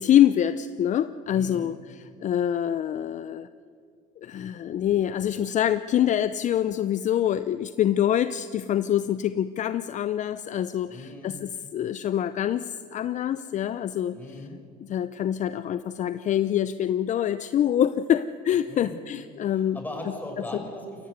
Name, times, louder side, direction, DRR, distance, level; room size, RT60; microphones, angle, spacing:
voice 1, 0.0-3.5 4.2-14.4 14.8-19.8, left 10 dB, 45° left, 13 dB, 0.6 m, -25 dB
voice 2, 1.3-1.7 10.9-11.4 14.1-14.6 18.7-18.9 19.5-21.1, left 1 dB, 10° left, 2 dB, 6.4 m, -38 dB
22.0 x 16.5 x 8.1 m, 2.2 s
supercardioid pair, 85°, 17 cm